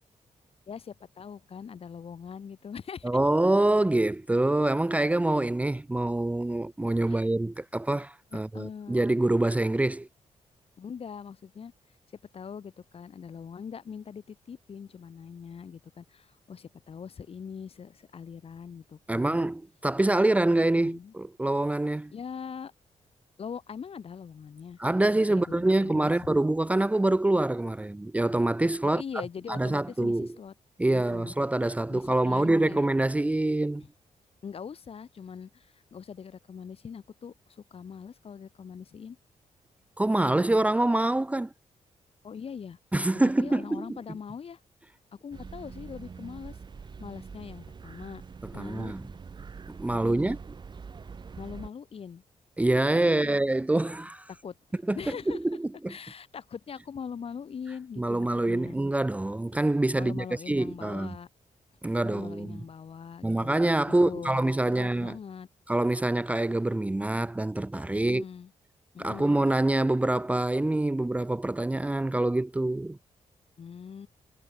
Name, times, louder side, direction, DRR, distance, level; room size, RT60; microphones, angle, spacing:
voice 1, 0.7-3.1 7.1-7.3 8.3-9.0 10.8-11.7 12.3-19.5 20.7-21.1 22.1-22.7 23.4-24.8 25.1-26.1 28.8-30.5 30.9-31.3 31.9-32.9 33.8-33.9 34.4-39.2 42.2-42.8 43.1-44.6 45.1-46.6 47.0-48.2 48.5-48.9 49.9-50.4 51.4-52.2 53.1-53.4 54.3-54.6 54.9-55.4 55.9-58.8 60.0-61.3 62.0-63.5 64.0-65.5 67.9-68.5 68.9-69.4 73.6-74.1, left 6 dB, 50° left, 3.3 m, -42 dB
voice 2, 3.0-10.1 19.1-22.1 24.8-29.0 29.5-30.3 30.8-33.8 40.0-41.5 42.9-43.9 48.6-49.0 49.7-50.4 52.6-54.3 54.9-55.0 55.3-55.9 58.0-61.1 61.8-62.6 63.2-65.2 65.7-68.2 69.0-73.0, right 2 dB, 10° right, 0.8 m, -25 dB
sound 1, 45.3-51.7, right 5 dB, 35° right, 1.4 m, -44 dB
cardioid pair, 120°, 13 cm